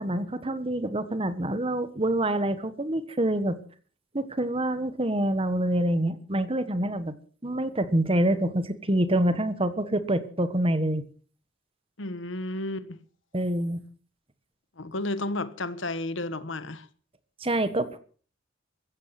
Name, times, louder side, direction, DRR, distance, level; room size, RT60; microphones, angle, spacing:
voice 1, 0.0-3.6 4.1-7.1 7.4-11.0 13.3-13.8 17.4-18.0, right 1 dB, 30° right, 1.4 m, -26 dB
voice 2, 12.0-13.0 14.8-16.9, left 2 dB, 75° left, 1.4 m, -32 dB
16.0 x 14.0 x 6.0 m
head